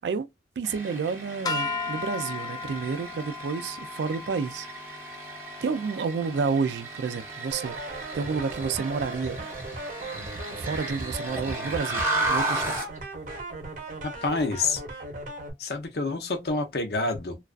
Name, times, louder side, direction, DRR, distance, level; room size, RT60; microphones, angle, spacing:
sound 1, 0.6-13.0, right 2 dB, 15° right, 0.7 m, -34 dB
voice 1, 0.6-4.7 5.6-7.8 8.1-9.5 10.6-12.8, right 5 dB, 75° right, 0.3 m, -30 dB
sound 2, 1.5-7.8, left 3 dB, 20° left, 0.3 m, -37 dB
sound 3, 7.5-15.5, right 2 dB, 45° right, 0.7 m, -37 dB
voice 2, 14.0-14.8 15.6-17.4, left 3 dB, 60° left, 0.6 m, -28 dB
2.3 x 2.3 x 2.3 m
head